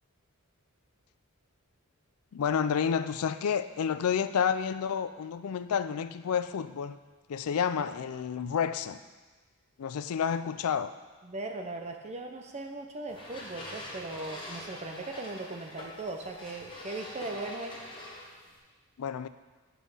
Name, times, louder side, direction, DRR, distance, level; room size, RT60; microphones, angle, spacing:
voice 1, 2.3-7.0 7.3-9.0 9.8-10.9 19.0-19.3, left 7 dB, 70° left, 13 dB, 0.4 m, -30 dB
voice 2, 11.2-17.8, right 2 dB, 30° right, 4 dB, 0.6 m, -39 dB
sound 1, 13.1-18.6, left 1 dB, 20° left, 1.4 m, -44 dB
8.6 x 5.8 x 5.4 m, 1.3 s
head